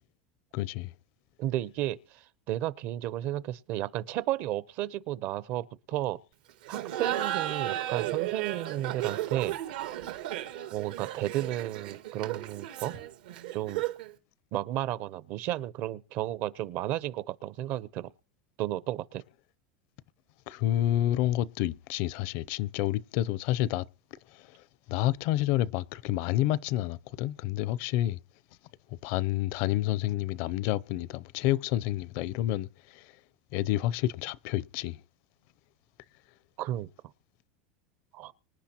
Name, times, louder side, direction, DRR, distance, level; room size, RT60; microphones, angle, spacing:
voice 1, 0.5-0.9 20.5-23.9 24.9-28.2 29.0-33.1 33.5-35.0, left 14 dB, 60° left, 0.6 m, -29 dB
voice 2, 1.4-6.2 6.7-9.6 10.7-13.0 13.5-13.9 14.5-18.1 18.6-19.2 36.6-36.9 38.1-38.3, right 14 dB, 50° right, 0.8 m, -33 dB
Laughter, 6.6-14.1, right 13 dB, 80° right, 1.7 m, -34 dB
25.0 x 10.0 x 3.0 m
supercardioid pair, 120°, 5 cm